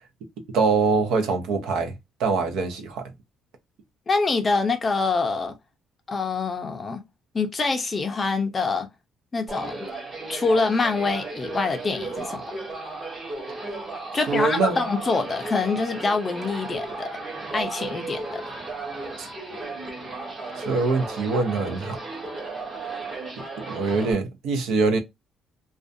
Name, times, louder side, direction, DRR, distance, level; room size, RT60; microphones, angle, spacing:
voice 1, 0.5-1.9 2.2-3.1 14.3-14.8 19.2-19.3 20.7-22.0 23.7-25.0, right 4 dB, 85° right, 0.6 m, -23 dB
voice 2, 4.1-5.5 6.1-7.0 7.3-8.9 9.3-9.8 10.3-12.5 14.1-17.1 17.5-18.4, left 4 dB, 25° left, 0.4 m, -25 dB
sound 1, 9.5-24.1, right 3 dB, 30° right, 0.8 m, -35 dB
2.4 x 2.2 x 2.5 m
cardioid pair, 165°, 0 cm